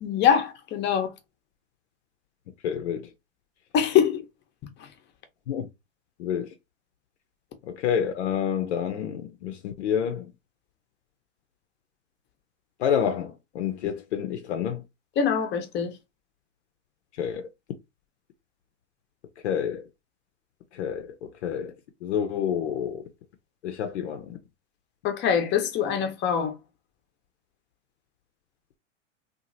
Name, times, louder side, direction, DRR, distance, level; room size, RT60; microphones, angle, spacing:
voice 1, 0.0-1.1 3.7-4.2 4.8-4.9 15.2-15.9 25.0-26.6, left 8 dB, 30° left, 0.8 m, -23 dB
voice 2, 2.6-3.1 5.5-5.7 6.2-6.5 7.6-10.3 12.8-14.8 17.1-17.5 19.4-19.9 20.7-21.7 22.0-23.1 23.6-24.4, left 8 dB, 65° left, 0.6 m, -28 dB
2.7 x 2.6 x 2.6 m
hypercardioid pair, 100°, 36 cm